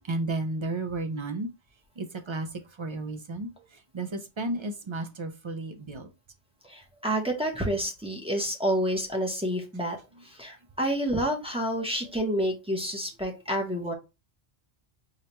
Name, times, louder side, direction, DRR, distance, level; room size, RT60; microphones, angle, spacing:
voice 1, 0.1-1.5 2.0-2.5 2.8-3.5 3.9-6.1, right 2 dB, 50° right, 0.3 m, -32 dB
voice 2, 6.7-10.0 10.2-13.9, equal, 5° right, 0.7 m, -29 dB
4.7 x 2.2 x 2.9 m
omnidirectional pair, 1.1 m